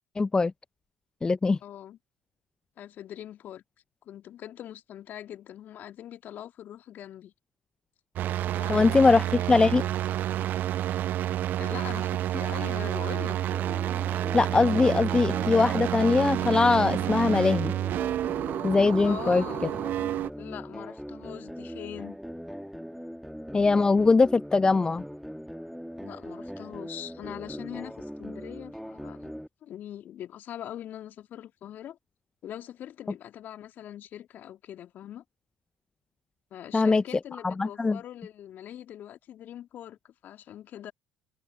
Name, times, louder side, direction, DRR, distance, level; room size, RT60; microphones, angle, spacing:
voice 1, 0.2-0.5 1.2-1.6 8.7-9.2 9.5-9.8 14.3-17.7 18.6-19.4 23.5-25.0 36.7-37.0 37.4-38.0, left 3 dB, 20° left, 0.5 m, -21 dB
voice 2, 1.6-2.0 2.8-3.6 4.0-7.3 8.5-9.1 9.4-9.9 11.6-13.4 19.0-19.8 20.4-22.2 26.0-32.0 32.4-35.2 36.5-40.9, left 11 dB, 50° left, 2.0 m, -42 dB
sound 1, 8.2-20.3, right 12 dB, 50° right, 1.0 m, -29 dB
sound 2, 13.5-29.5, equal, ahead, 1.7 m, -40 dB
hypercardioid pair, 60°, 4 cm